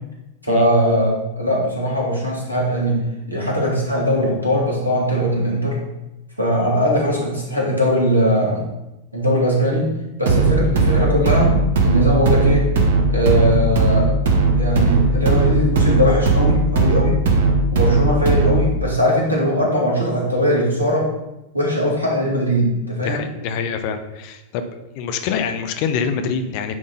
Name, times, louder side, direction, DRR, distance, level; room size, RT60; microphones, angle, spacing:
voice 1, 0.4-3.0 3.3-5.8 6.4-8.7 9.1-9.9 10.2-11.6 11.8-12.7 13.1-14.2 14.6-17.3 17.7-21.1 21.5-23.2, equal, 85° right, -3 dB, 2.3 m, -20 dB
sound 1, 10.3-18.7, right 3 dB, 60° right, 1.2 m, -17 dB
voice 2, 23.0-24.7 24.9-26.8, left 6 dB, 45° left, 7 dB, 0.8 m, -25 dB
9.5 x 3.7 x 5.7 m, 0.95 s
figure-of-eight pair, 90°, 0 cm